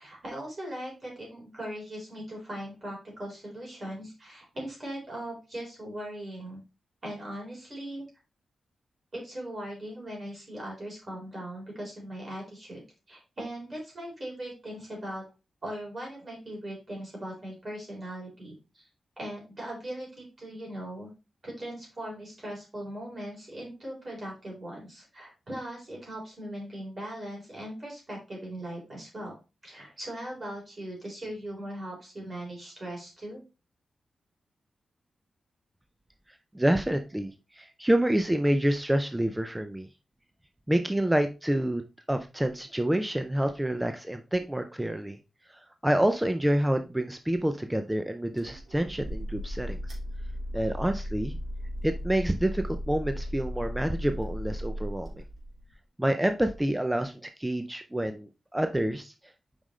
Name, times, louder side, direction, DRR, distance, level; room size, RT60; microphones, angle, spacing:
voice 1, 0.0-6.6 7.0-8.0 9.1-12.8 13.1-15.2 15.6-18.9 19.2-21.1 21.4-29.3 29.6-33.4, right 1 dB, 30° right, -2 dB, 3.9 m, -39 dB
voice 2, 36.5-39.9 40.7-41.8 42.1-45.2 45.5-50.0 50.5-51.4 51.8-55.1 56.0-59.1, right 1 dB, 5° right, 7 dB, 0.4 m, -28 dB
sound 1, 48.4-55.7, equal, 70° right, 2.8 m, -36 dB
7.3 x 5.2 x 3.1 m, 0.30 s
wide cardioid pair, 165°, 0 cm